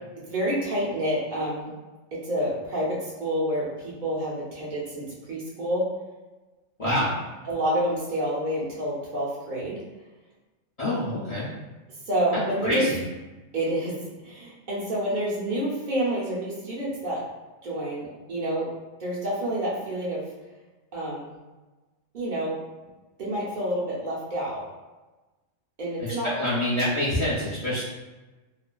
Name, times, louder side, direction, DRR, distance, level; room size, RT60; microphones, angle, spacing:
voice 1, 0.1-1.7 2.1-5.9 6.8-7.0 7.5-9.8 12.1-12.9 13.5-14.0 14.2-17.2 17.6-18.7 19.0-20.3 20.9-21.3 22.1-22.6 23.2-24.6 25.8-26.3, right 1 dB, 50° right, -6 dB, 0.7 m, -28 dB
voice 2, 6.8-7.1 10.8-11.5 12.6-13.0 26.0-27.8, left 1 dB, 45° left, -8 dB, 0.5 m, -26 dB
2.5 x 2.3 x 2.2 m, 1.2 s
omnidirectional pair, 1.3 m